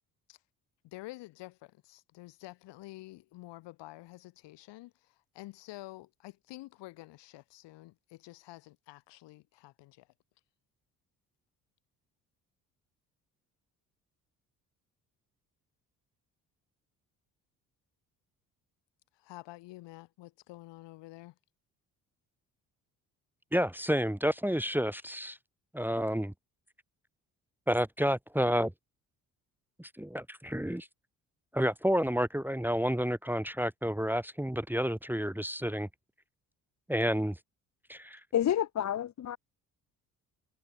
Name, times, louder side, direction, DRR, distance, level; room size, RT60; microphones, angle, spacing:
voice 1, 0.8-4.9 5.3-10.1 19.2-21.3, left 19 dB, 70° left, 4.3 m, -49 dB
voice 2, 23.5-25.4 25.7-26.3 27.7-28.7 29.8-30.9 31.5-35.9 36.9-37.4 37.9-38.2, equal, 5° right, 1.8 m, -30 dB
voice 3, 38.3-39.4, left 10 dB, 40° left, 0.8 m, -29 dB
hypercardioid pair, 50°, 44 cm